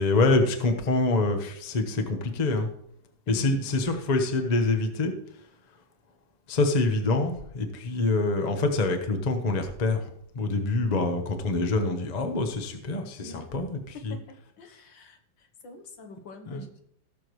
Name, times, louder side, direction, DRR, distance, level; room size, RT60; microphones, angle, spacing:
voice 1, 0.0-2.7 3.3-5.1 6.5-10.1 10.3-14.2 16.5-16.6, left 2 dB, 30° left, 6 dB, 0.9 m, -26 dB
voice 2, 3.3-3.6 13.2-13.4 14.1-16.8, left 3 dB, 70° left, 5 dB, 1.8 m, -45 dB
17.0 x 6.8 x 3.2 m, 0.69 s
omnidirectional pair, 2.1 m